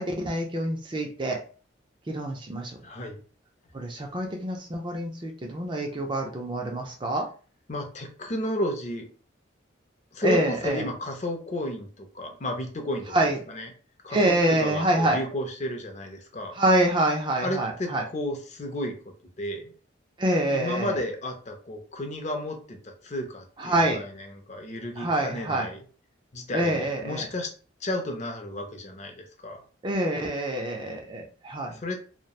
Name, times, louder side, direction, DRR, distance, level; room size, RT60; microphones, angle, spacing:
voice 1, 0.0-1.4 2.1-2.8 3.7-7.3 10.2-10.8 13.1-13.4 14.1-15.2 16.5-18.0 20.2-21.0 23.6-24.0 25.0-25.7 26.5-27.3 29.8-31.8, right 1 dB, 25° right, 2 dB, 0.3 m, -26 dB
voice 2, 2.8-3.2 7.7-9.1 10.1-13.2 13.5-13.7 14.0-16.5 17.4-18.9 19.4-19.7 20.5-24.0 24.5-25.8 26.3-27.5 27.8-29.6 31.7-32.0, left 1 dB, 35° left, 4 dB, 0.4 m, -32 dB
2.8 x 2.1 x 2.3 m, 0.39 s
head